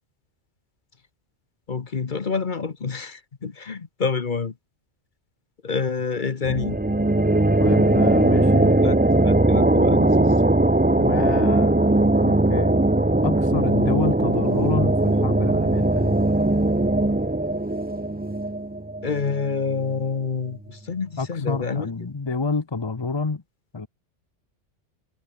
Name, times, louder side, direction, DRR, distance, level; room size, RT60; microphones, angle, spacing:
voice 1, 1.7-4.5 5.6-6.8 8.8-9.0 9.2-10.3 19.0-21.9, left 5 dB, 45° left, 1.2 m, -27 dB
sound 1, 6.4-19.8, right 2 dB, 10° right, 0.5 m, -20 dB
voice 2, 7.6-8.9 11.0-12.8 13.2-16.2 21.2-23.4 23.7-23.9, left 4 dB, 25° left, 0.8 m, -28 dB
omnidirectional pair, 1.2 m